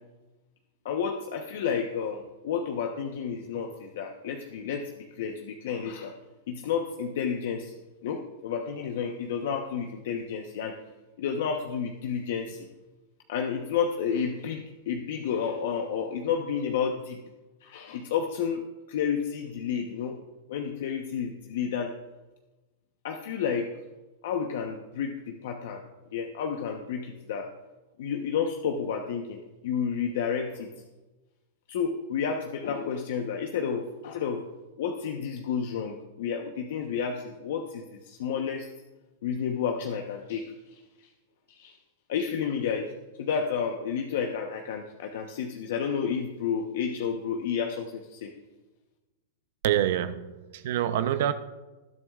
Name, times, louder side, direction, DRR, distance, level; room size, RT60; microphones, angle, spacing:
voice 1, 0.8-6.2 6.5-10.8 11.2-12.7 13.3-17.2 17.6-20.2 20.5-22.0 23.0-23.7 24.2-25.8 26.1-27.5 28.0-30.7 31.7-34.5 34.8-38.7 39.2-40.8 41.5-41.8 42.1-42.9 43.2-48.3, left 7 dB, 65° left, 3 dB, 1.0 m, -31 dB
voice 2, 49.6-51.3, right 11 dB, 60° right, 10 dB, 0.7 m, -26 dB
19.5 x 11.0 x 2.5 m, 1.1 s
supercardioid pair, 160°, 0 cm